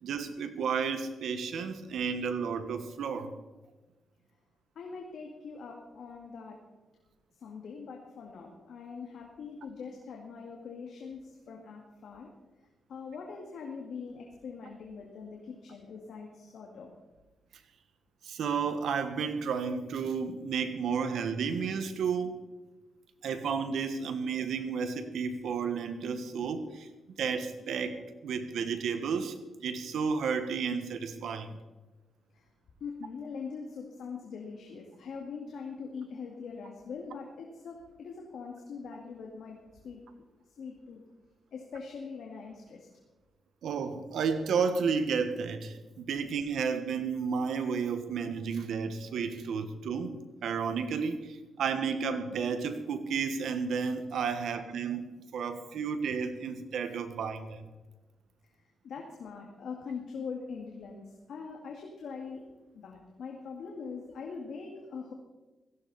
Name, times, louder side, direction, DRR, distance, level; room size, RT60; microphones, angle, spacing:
voice 1, 0.0-3.3 18.2-22.3 23.2-26.9 27.2-31.6 43.6-50.1 50.4-55.0 55.3-57.7, right 6 dB, 80° right, 9 dB, 1.5 m, -32 dB
voice 2, 4.8-6.6 7.4-12.3 12.9-16.9 32.3-32.5 32.8-39.6 39.8-40.0 40.6-41.0 41.5-42.9 58.8-62.4 62.7-65.1, left 5 dB, 70° left, 0 dB, 2.2 m, -42 dB
17.0 x 15.5 x 4.3 m, 1.2 s
cardioid pair, 120°, 0 cm